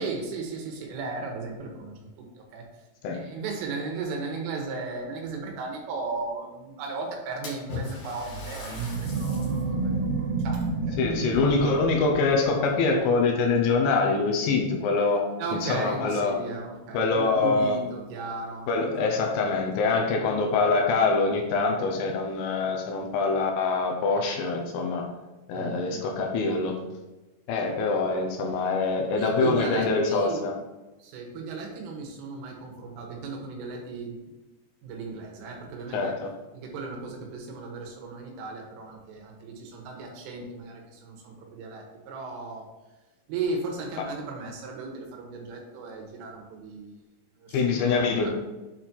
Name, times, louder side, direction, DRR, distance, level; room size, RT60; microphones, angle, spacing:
voice 1, 0.0-2.3 2.5-2.7 3.1-11.0 11.3-11.9 15.4-18.7 25.5-26.6 29.2-30.4 31.0-34.2 34.8-36.2 36.5-42.7 43.3-47.0 47.4-48.3, right 3 dB, 80° right, 1 dB, 3.8 m, -36 dB
Splash splatter, 7.4-9.7 10.2-10.3 11.3-12.3 12.6-13.1 13.9-14.0 14.5-14.6 16.8-16.9 17.2-17.3 17.8-17.9 18.3-18.4 19.2-19.7, left 3 dB, 55° left, 2.8 m, -40 dB
sound 1, 8.2-12.6, right 3 dB, 60° right, 3.1 m, -30 dB
voice 2, 11.0-16.4 16.9-17.8 18.7-25.0 25.5-26.8 27.5-30.5 35.9-36.3 44.0-44.1 47.5-48.3, left 4 dB, 75° left, 1 dB, 3.0 m, -24 dB
8.6 x 4.2 x 4.5 m, 1.1 s
omnidirectional pair, 5.8 m